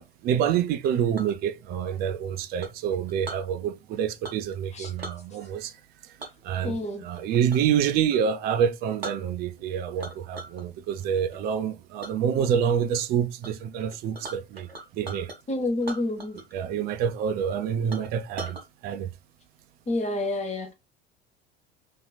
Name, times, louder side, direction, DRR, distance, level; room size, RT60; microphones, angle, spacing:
voice 1, 0.0-5.7 6.4-14.7 14.9-15.3 16.5-18.6 18.8-19.1, right 8 dB, 35° right, 0.4 m, -27 dB
Chink clink, 0.8-1.4 2.6-3.5 4.2-4.5 4.8-5.2 6.2-7.7 8.1-8.3 8.7-8.8 9.0-9.6 10.0-10.6 11.0-11.4 12.0-12.2 12.7-13.0 13.4-13.5 13.8-15.4 15.8-16.6 16.9-17.0 17.4-17.5 17.9-18.6, right 2 dB, 90° right, 0.5 m, -40 dB
voice 2, 6.6-7.0 15.5-16.4 19.9-20.7, left 2 dB, 25° left, 1.0 m, -28 dB
2.9 x 2.6 x 2.2 m
figure-of-eight pair, 65°, 30 cm